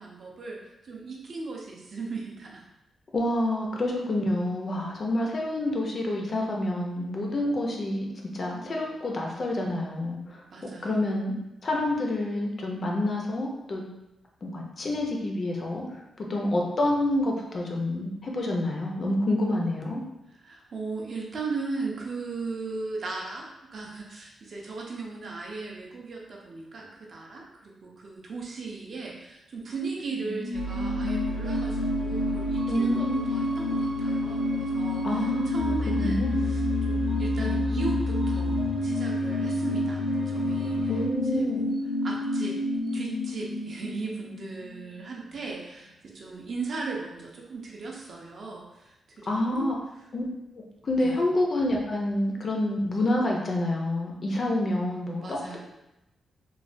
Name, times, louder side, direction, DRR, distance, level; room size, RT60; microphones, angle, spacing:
voice 1, 0.0-2.6 10.5-11.1 20.3-41.0 41.3-42.6 42.9-50.1 51.0-51.2 55.2-55.6, right 4 dB, 45° right, -1 dB, 0.5 m, -37 dB
voice 2, 3.1-8.1 8.3-10.4 10.8-11.3 11.6-13.8 14.4-16.0 16.3-20.0 32.7-33.3 35.0-36.4 40.9-41.6 49.3-49.7 50.1-50.2 50.5-55.6, left 1 dB, 35° left, 0 dB, 0.4 m, -28 dB
sound 1, 30.0-45.1 45.4-45.5, left 1 dB, 90° left, 0.7 m, -29 dB
sound 2, 30.5-41.1, left 2 dB, 80° right, 0.7 m, -33 dB
3.1 x 2.1 x 2.5 m, 0.92 s
wide cardioid pair, 180°, 0 cm